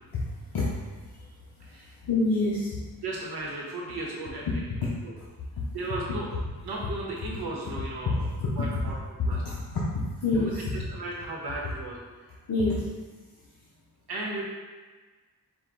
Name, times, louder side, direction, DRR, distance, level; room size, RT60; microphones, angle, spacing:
voice 1, 0.1-1.3 2.0-2.8 5.6-5.7 8.4-8.5 9.4-10.7 12.5-12.9, left 2 dB, 65° left, -7 dB, 0.7 m, -28 dB
voice 2, 1.6-1.9 3.0-4.5 5.0-5.1 5.7-6.3 6.6-8.2 8.5-8.9 9.3-9.4 10.3-12.0 14.1-14.4, right 2 dB, 90° right, -4 dB, 1.1 m, -35 dB
4.7 x 2.2 x 3.7 m, 1.3 s
wide cardioid pair, 135°, 38 cm